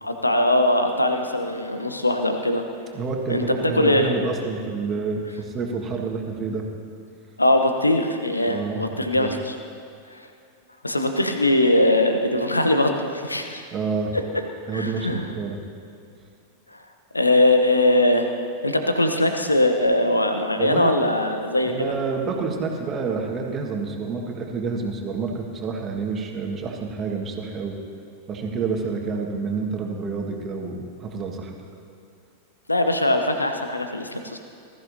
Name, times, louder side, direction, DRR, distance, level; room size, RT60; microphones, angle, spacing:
voice 1, 0.0-2.6 3.3-3.4 3.7-4.2 7.4-9.6 10.1-10.2 10.8-13.6 14.7-15.2 17.1-18.3 18.6-21.9 32.7-34.4, left 1 dB, 85° left, 6 dB, 0.9 m, -21 dB
voice 2, 2.9-6.7 8.5-9.3 13.7-14.1 14.7-15.6 20.6-20.9 21.7-27.8 28.3-31.6, right 4 dB, 25° right, 1 dB, 1.7 m, -28 dB
20.5 x 14.0 x 2.8 m, 2.4 s
figure-of-eight pair, 90°, 0 cm